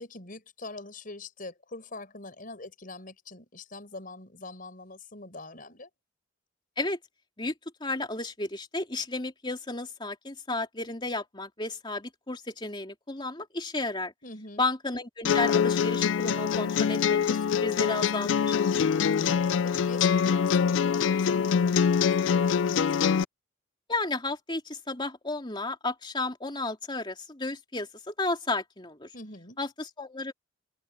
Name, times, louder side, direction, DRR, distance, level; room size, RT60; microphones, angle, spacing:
voice 1, 0.0-5.9 14.2-14.7 18.7-23.1 29.1-29.6, left 2 dB, 45° left, 5.6 m, -44 dB
voice 2, 7.8-14.1 14.6-18.5 23.9-29.1 29.6-30.3, left 2 dB, 25° left, 3.2 m, -33 dB
sound 1, 15.2-23.2, left 7 dB, 70° left, 0.3 m, -24 dB
open air
head